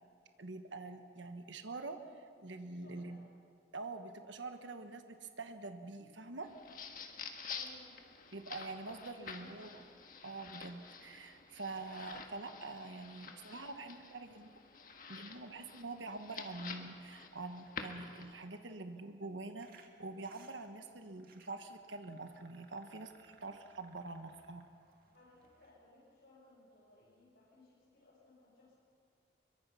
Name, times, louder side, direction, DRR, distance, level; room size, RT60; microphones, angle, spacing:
voice 1, 0.4-3.2 3.7-6.5 8.3-9.7 10.2-14.5 15.1-24.6, right 3 dB, 90° right, 7 dB, 1.4 m, -45 dB
voice 2, 2.8-3.2 7.5-8.0 9.1-9.9 14.4-14.5 25.1-28.8, left 2 dB, 75° left, -8 dB, 6.2 m, -62 dB
sound 1, 6.4-18.4, left 5 dB, 45° left, 1.7 m, -49 dB
sound 2, 19.6-25.7, right 4 dB, 50° right, 2.1 m, -66 dB
24.5 x 22.5 x 5.8 m, 2.3 s
head